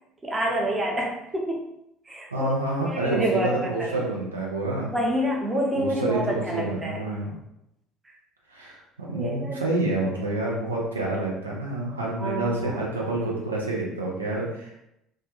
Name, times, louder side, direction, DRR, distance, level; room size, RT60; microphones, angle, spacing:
voice 1, 0.2-1.6 2.1-2.5 2.9-4.1 4.9-7.0 9.1-9.6 12.2-12.8, right 1 dB, 25° right, -1 dB, 0.6 m, -27 dB
voice 2, 2.3-4.9 5.8-7.4 8.5-14.8, right 2 dB, 90° right, -4 dB, 0.4 m, -28 dB
2.2 x 2.1 x 2.9 m, 0.83 s
figure-of-eight pair, 60°, 0 cm